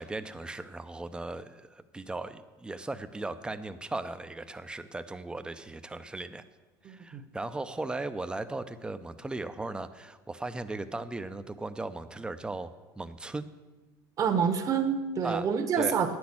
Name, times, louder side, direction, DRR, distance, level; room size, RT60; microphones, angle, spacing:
voice 1, 0.0-6.4 6.8-13.5 15.2-15.5 15.8-16.0, right 2 dB, 10° right, 11 dB, 0.6 m, -37 dB
voice 2, 6.8-7.2 14.2-16.2, right 6 dB, 40° right, 6 dB, 1.3 m, -27 dB
9.4 x 6.2 x 8.6 m, 1.2 s
supercardioid pair, 110°, 9 cm